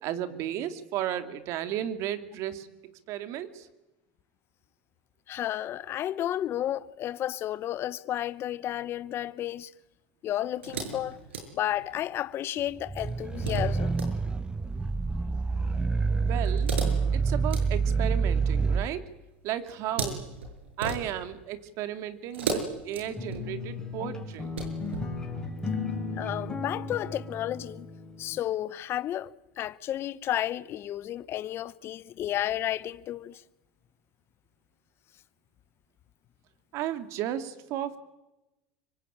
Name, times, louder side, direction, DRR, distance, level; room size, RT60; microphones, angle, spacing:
voice 1, 0.0-2.7 3.1-3.7 16.2-16.7 17.1-19.0 19.4-20.3 20.8-24.6 36.7-38.0, right 11 dB, 55° right, 2.7 m, -34 dB
voice 2, 5.3-9.7 10.2-11.2 11.5-13.9 26.2-27.9 28.2-29.3 29.6-33.4, left 12 dB, 40° left, 0.9 m, -32 dB
sound 1, 10.6-12.1 13.0-14.1 16.4-18.6 19.7-21.4 22.3-23.7 24.3-25.1, right 4 dB, 90° right, 6.8 m, -36 dB
sound 2, 12.8-18.9, right 4 dB, 15° right, 0.9 m, -27 dB
sound 3, 23.0-28.4, left 3 dB, 10° left, 6.7 m, -36 dB
25.5 x 24.5 x 8.9 m
hypercardioid pair, 95°, 6 cm